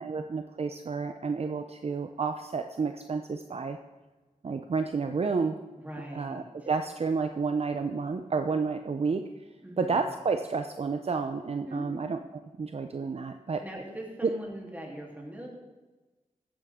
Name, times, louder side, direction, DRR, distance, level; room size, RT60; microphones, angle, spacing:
voice 1, 0.0-3.8 4.4-5.6 6.1-9.5 9.8-12.2 12.6-13.6, right 4 dB, 50° right, 7 dB, 0.6 m, -30 dB
voice 2, 5.7-6.7 9.6-10.0 11.7-12.0 13.6-15.5, right 1 dB, 10° right, -2 dB, 3.2 m, -41 dB
14.5 x 8.9 x 3.7 m, 1.2 s
cardioid pair, 65°, 14 cm